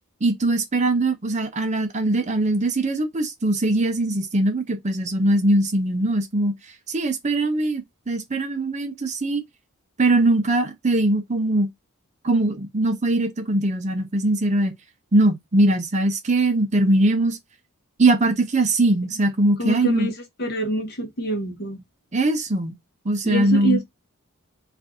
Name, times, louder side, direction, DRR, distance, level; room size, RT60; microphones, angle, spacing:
voice 1, 0.2-6.5 6.9-9.4 10.0-11.7 12.2-14.7 15.1-17.4 18.0-20.1 22.1-22.8 23.0-23.8, right 2 dB, 35° right, 0.6 m, -21 dB
voice 2, 19.6-20.1 20.4-21.8 23.2-23.8, right 1 dB, 50° left, 1.1 m, -25 dB
2.6 x 2.5 x 3.5 m
head